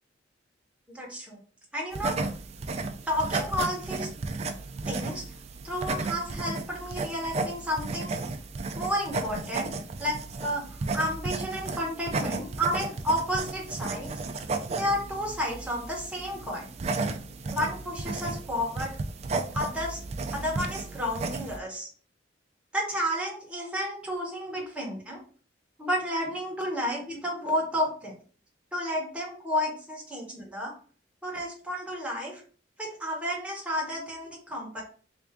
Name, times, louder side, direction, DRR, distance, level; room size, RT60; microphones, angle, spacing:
voice 1, 0.9-1.4 1.7-2.1 3.1-4.1 4.8-5.2 5.6-8.1 8.7-9.7 10.0-10.1 10.4-14.1 14.7-16.7 17.5-18.9 19.5-20.0 20.3-21.9 22.7-25.2 25.8-28.1 28.7-30.7 31.2-32.4 32.8-34.8, equal, 5° right, -3 dB, 1.1 m, -31 dB
sound 1, 1.9-21.6, right 3 dB, 35° right, 0.3 m, -34 dB
3.4 x 2.6 x 3.5 m, 0.43 s
head